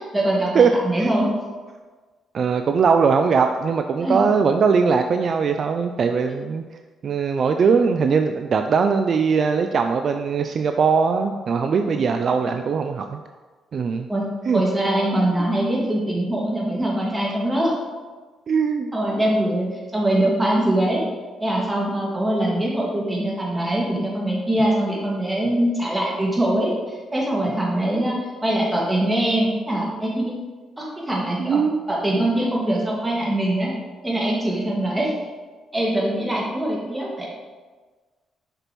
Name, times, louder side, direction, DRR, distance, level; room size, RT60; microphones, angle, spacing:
voice 1, 0.1-1.3 4.0-4.2 11.8-12.0 14.1-17.7 18.9-19.7 19.9-21.0 21.4-30.4 30.8-31.6 31.9-33.7 34.0-35.1 35.7-37.3, right 1 dB, 15° right, -3 dB, 2.0 m, -23 dB
voice 2, 2.3-6.6 7.0-13.2 13.7-14.1 14.5-14.6 18.5-18.9 31.4-31.8, right 5 dB, 50° right, 6 dB, 0.3 m, -20 dB
6.6 x 5.9 x 3.1 m, 1.4 s
cardioid pair, 90°, 0 cm